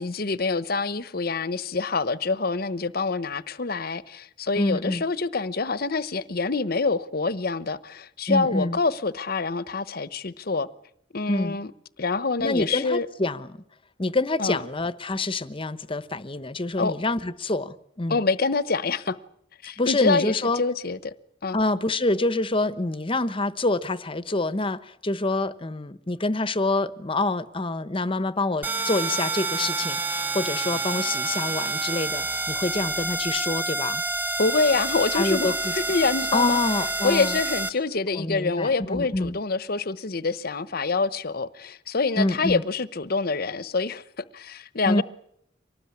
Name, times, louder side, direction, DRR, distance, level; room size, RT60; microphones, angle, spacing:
voice 1, 0.0-10.7 11.1-11.7 12.0-13.1 14.4-14.6 16.8-16.9 18.1-19.2 19.6-21.1 21.4-21.6 34.4-36.6 37.0-44.0 44.3-45.0, left 4 dB, 55° left, 1.0 m, -26 dB
voice 2, 4.6-5.0 8.3-8.8 11.3-11.6 12.4-13.6 14.0-18.2 19.8-20.6 21.5-34.0 35.1-35.7 36.3-37.4 38.1-39.4 42.2-42.6 44.9-45.0, left 2 dB, 30° left, 1.1 m, -26 dB
sound 1, 28.6-37.7, right 3 dB, 10° right, 1.0 m, -28 dB
25.0 x 19.0 x 9.7 m
head